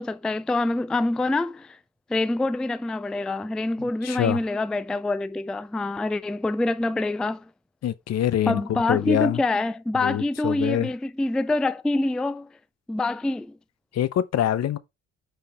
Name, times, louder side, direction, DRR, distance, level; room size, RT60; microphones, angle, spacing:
voice 1, 0.0-1.8 2.1-7.5 8.5-12.5 12.9-13.6, left 2 dB, 5° left, 0.3 m, -26 dB
voice 2, 4.0-4.4 7.8-9.4 10.0-10.9 13.9-14.8, left 11 dB, 60° left, 0.7 m, -25 dB
5.9 x 5.6 x 4.3 m
cardioid pair, 90°, 30 cm